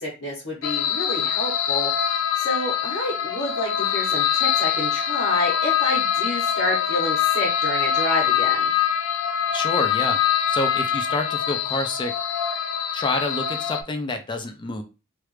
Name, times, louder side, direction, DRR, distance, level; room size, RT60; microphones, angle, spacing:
voice 1, 0.0-8.7, left 1 dB, 65° left, -6 dB, 1.2 m, -29 dB
sound 1, 0.6-13.8, left 9 dB, 85° left, 0.4 m, -24 dB
voice 2, 9.5-10.2 10.5-12.1 12.9-14.8, left 2 dB, 25° left, 6 dB, 0.4 m, -28 dB
3.2 x 2.4 x 3.1 m, 0.30 s
head